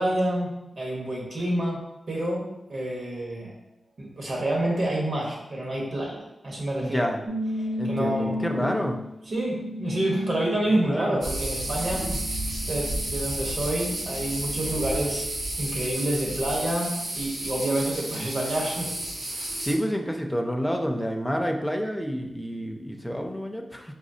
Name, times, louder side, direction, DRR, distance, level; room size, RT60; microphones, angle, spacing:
voice 1, 0.0-1.8 2.1-3.5 4.0-7.0 7.6-8.7 9.3-12.1 12.6-15.3 15.6-18.9 19.2-19.5, right 1 dB, 60° right, -3 dB, 1.1 m, -28 dB
voice 2, 6.8-7.2 7.8-8.9 10.8-11.2 12.0-12.2 19.6-23.9, equal, 5° left, 2 dB, 0.4 m, -29 dB
sound 1, 7.3-13.3 13.7-15.1, left 1 dB, 35° right, 0.6 m, -35 dB
sound 2, 11.2-19.7, right 1 dB, 85° right, 0.9 m, -31 dB
4.1 x 3.1 x 2.7 m, 0.94 s
wide cardioid pair, 105°, 0 cm